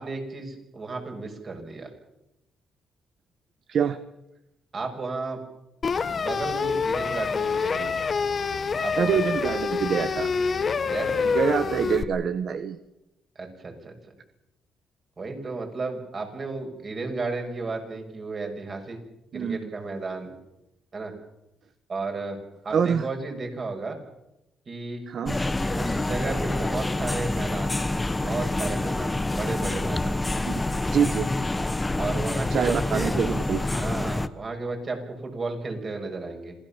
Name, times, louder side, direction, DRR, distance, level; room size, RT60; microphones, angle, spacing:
voice 1, 0.0-1.9 4.7-5.4 6.1-8.0 8.8-9.6 10.8-11.3 13.3-13.9 15.2-19.0 19.3-20.3 20.9-21.1 21.9-24.0 24.7-25.0 25.7-30.2 32.0-33.1 33.7-36.5, right 3 dB, 40° right, 4 dB, 6.3 m, -33 dB
voice 2, 3.7-4.0 9.0-10.3 11.2-12.8 19.3-19.7 22.7-23.1 25.1-25.4 30.4-30.6 30.9-31.3 32.5-33.6, right 7 dB, 60° right, 10 dB, 1.2 m, -25 dB
sound 1, 5.8-12.0, left 5 dB, 40° left, 1.4 m, -26 dB
sound 2, 25.3-34.3, left 2 dB, 15° left, 1.1 m, -27 dB
27.0 x 17.0 x 7.3 m, 0.89 s
cardioid pair, 90°, 0 cm